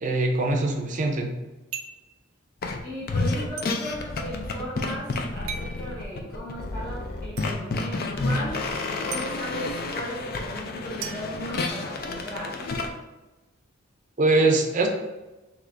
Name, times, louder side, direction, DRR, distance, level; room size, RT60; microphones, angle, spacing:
voice 1, 0.0-1.3 14.2-14.9, right 2 dB, 40° right, 3 dB, 0.5 m, -22 dB
sound 1, 1.7-2.1 3.6-3.7 5.5-5.8 7.4-7.5 9.1-9.3 11.0-12.1, right 6 dB, 85° right, 0.5 m, -37 dB
sound 2, 2.6-2.8 3.1-12.9, left 3 dB, 45° left, 0.4 m, -30 dB
voice 2, 2.8-12.7, equal, 10° left, -9 dB, 0.7 m, -36 dB
3.9 x 2.8 x 3.3 m, 1.1 s
head